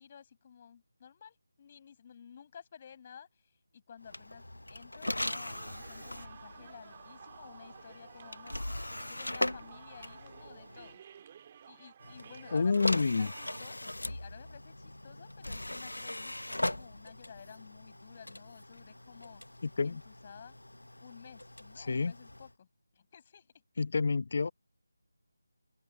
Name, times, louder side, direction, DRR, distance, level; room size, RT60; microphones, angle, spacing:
voice 1, 0.0-4.5 4.7-8.5 8.9-11.0 11.7-19.4 19.8-20.6 21.0-22.7 22.9-23.5, left 7 dB, 30° left, 7.2 m, -53 dB
sound 1, 4.0-10.9 12.0-22.5, left 1 dB, 80° left, 1.0 m, -40 dB
sound 2, 5.2-13.6, right 8 dB, 25° right, 2.1 m, -53 dB
voice 2, 12.5-13.3 19.6-20.0 21.8-22.1 23.8-24.5, left 4 dB, 45° left, 1.0 m, -29 dB
open air
figure-of-eight pair, 160°, 0 cm